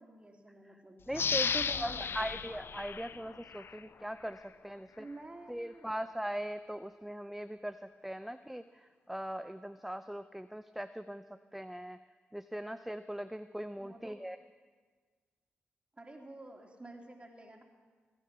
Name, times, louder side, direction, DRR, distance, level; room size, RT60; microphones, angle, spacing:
voice 1, 0.0-1.0 1.4-2.3 5.0-5.9 13.8-14.2 15.9-17.6, right 2 dB, 25° right, 2 dB, 2.9 m, -50 dB
sound 1, 1.1-3.8 4.3-4.4, left 6 dB, 55° left, 0.5 m, -34 dB
voice 2, 1.1-5.1 5.5-12.0 12.3-14.4, equal, 5° right, 11 dB, 0.5 m, -40 dB
17.5 x 10.0 x 6.1 m, 1.5 s
supercardioid pair, 45°, 5 cm